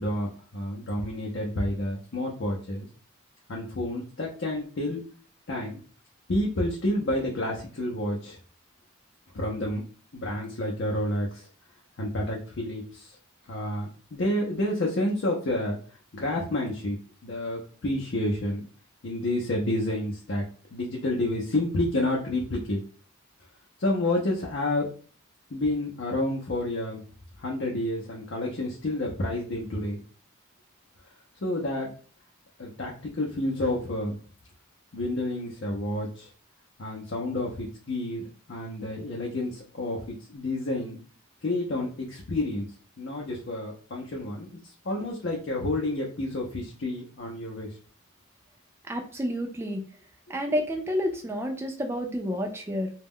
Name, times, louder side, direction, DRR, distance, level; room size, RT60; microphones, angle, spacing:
voice 1, 0.0-2.9 3.5-5.0 5.5-5.8 6.3-8.4 9.3-9.8 10.1-11.5 12.0-13.2 13.5-15.8 16.1-17.0 17.2-18.7 19.0-22.8 23.8-24.9 25.5-27.0 27.4-30.0 31.4-31.9 32.6-34.1 34.9-36.3 36.8-41.0 41.4-42.7 43.0-47.7, left 1 dB, 55° left, -2 dB, 0.5 m, -29 dB
voice 2, 48.9-49.8 50.3-52.9, equal, 10° right, 2 dB, 0.3 m, -29 dB
2.2 x 2.0 x 3.5 m, 0.41 s
head